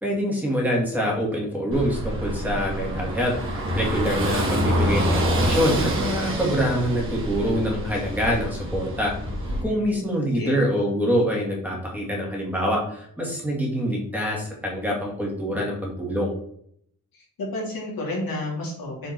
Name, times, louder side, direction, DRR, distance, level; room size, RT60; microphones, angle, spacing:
voice 1, 0.0-3.3 3.7-9.1 9.6-16.3, equal, 5° right, -2 dB, 2.4 m, -25 dB
Car passing by / Engine, 1.7-9.6, equal, 40° right, 2.6 m, -26 dB
voice 2, 9.4-10.0 10.3-10.6 17.1-19.1, left 2 dB, 85° left, -2 dB, 3.1 m, -31 dB
7.6 x 4.4 x 4.5 m, 0.67 s
wide cardioid pair, 150°, 34 cm